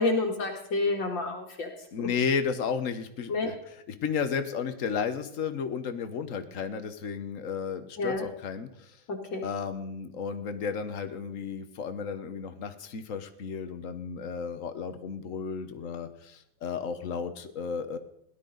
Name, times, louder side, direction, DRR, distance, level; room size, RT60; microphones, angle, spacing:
voice 1, 0.0-1.7 2.0-2.1 3.3-3.5 8.0-8.2 9.1-9.4, left 3 dB, 65° left, 2 dB, 2.4 m, -29 dB
voice 2, 1.9-9.0 9.4-18.0, left 6 dB, 50° left, 9 dB, 1.1 m, -33 dB
17.0 x 12.0 x 3.9 m, 0.78 s
omnidirectional pair, 2.2 m